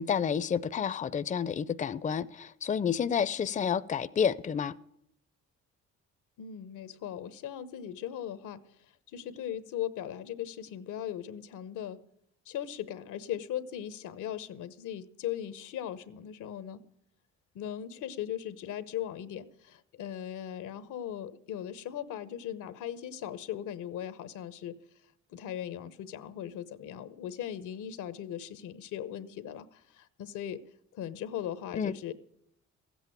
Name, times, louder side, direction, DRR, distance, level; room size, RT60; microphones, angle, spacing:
voice 1, 0.0-4.7 31.8-31.9, left 7 dB, 25° left, 0.5 m, -30 dB
voice 2, 6.4-8.6 9.1-12.0 12.5-16.8 17.5-24.8 25.3-30.6 30.9-32.1, left 10 dB, 85° left, 1.0 m, -38 dB
15.0 x 8.2 x 9.1 m
cardioid pair, 90°, 30 cm